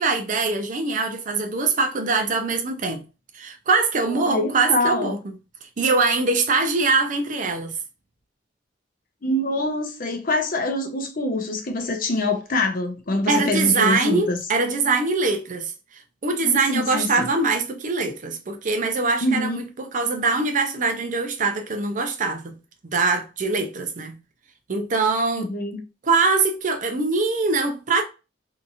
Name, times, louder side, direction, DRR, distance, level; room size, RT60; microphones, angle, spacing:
voice 1, 0.0-3.0 3.3-5.2 5.8-7.8 13.3-22.6 22.8-24.2 24.7-25.5 26.0-28.0, right 4 dB, 45° right, 0.5 m, -23 dB
voice 2, 4.1-5.1 9.2-14.4 16.4-17.2 19.2-19.6 25.4-25.8, left 2 dB, 50° left, 0.6 m, -25 dB
2.8 x 2.6 x 2.4 m
head